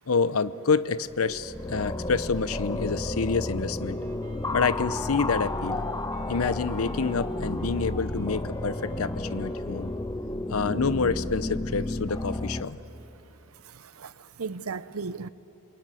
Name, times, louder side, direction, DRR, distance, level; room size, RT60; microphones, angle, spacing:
voice 1, 0.1-4.0 4.5-5.8 6.3-9.9 10.5-12.8, left 5 dB, 85° left, 0.7 m, -27 dB
sound 1, 1.0-12.6, left 2 dB, 15° left, 0.6 m, -32 dB
Wind instrument woodwind instrument, 3.8-10.5, right 1 dB, 40° right, 3.8 m, -47 dB
voice 2, 13.6-15.3, right 4 dB, 85° right, 0.7 m, -36 dB
28.0 x 22.5 x 9.2 m
head